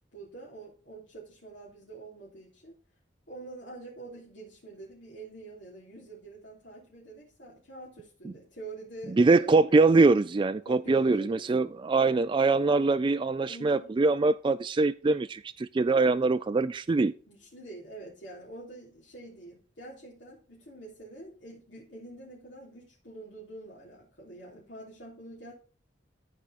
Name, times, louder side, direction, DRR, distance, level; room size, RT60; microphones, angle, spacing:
voice 1, 0.1-2.8 3.3-9.8 10.7-11.4 13.5-13.9 17.2-25.5, right 2 dB, 70° left, 3.4 m, -46 dB
voice 2, 9.2-17.1, right 3 dB, 25° right, 0.3 m, -23 dB
14.0 x 4.9 x 4.2 m
head